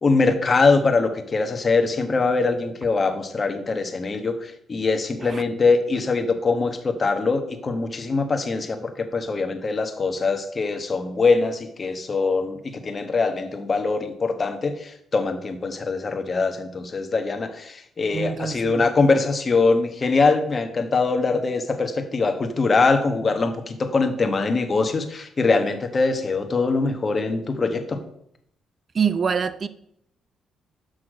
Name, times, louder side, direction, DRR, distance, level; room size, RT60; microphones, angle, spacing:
voice 1, 0.0-28.0, left 4 dB, 35° left, 1.2 m, -22 dB
voice 2, 18.1-18.9 28.9-29.7, right 6 dB, 40° right, 0.5 m, -25 dB
6.4 x 6.0 x 4.9 m
cardioid pair, 90°, 0 cm